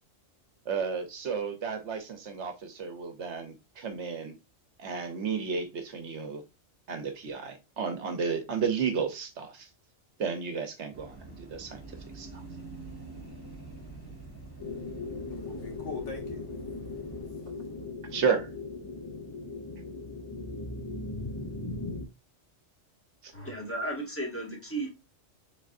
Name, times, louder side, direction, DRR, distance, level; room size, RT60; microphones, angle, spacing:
voice 1, 0.6-4.4 4.8-6.4 6.9-9.7 10.2-12.4 18.1-18.5 23.2-23.3, right 6 dB, 70° right, 1.1 m, -32 dB
sound 1, 10.9-17.3, right 3 dB, 20° right, 2.0 m, -46 dB
sound 2, 14.6-22.1, left 3 dB, 35° left, 0.4 m, -38 dB
voice 2, 15.3-17.8, left 4 dB, 70° left, 1.7 m, -44 dB
voice 3, 23.3-24.9, right 1 dB, 10° left, 1.7 m, -34 dB
5.0 x 3.9 x 2.5 m
omnidirectional pair, 1.3 m